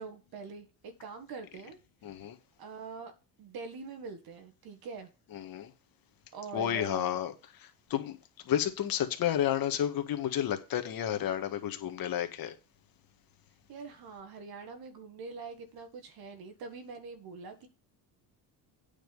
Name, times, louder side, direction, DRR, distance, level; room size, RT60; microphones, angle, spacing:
voice 1, 0.0-1.8 2.2-2.3 2.6-3.1 3.4-5.1 6.3-7.2 13.7-17.7, right 4 dB, 60° right, 1.9 m, -44 dB
voice 2, 2.0-2.4 5.3-5.7 6.5-7.3 7.9-8.2 8.5-12.5, left 10 dB, 55° left, 1.7 m, -31 dB
9.0 x 5.2 x 5.4 m
cardioid pair, 115°, 41 cm